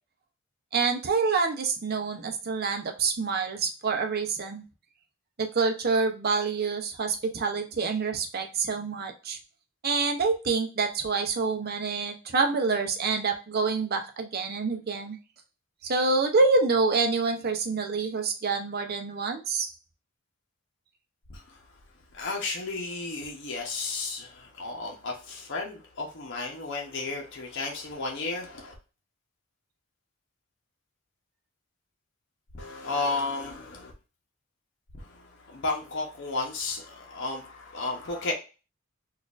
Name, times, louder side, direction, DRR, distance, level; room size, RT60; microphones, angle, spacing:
voice 1, 0.7-4.6 5.4-9.4 9.8-15.2 15.8-19.7, right 4 dB, 45° right, 5 dB, 0.6 m, -27 dB
voice 2, 22.2-28.7 32.5-33.9 35.0-38.3, left 3 dB, 55° left, -1 dB, 0.8 m, -33 dB
4.1 x 2.5 x 2.4 m, 0.32 s
head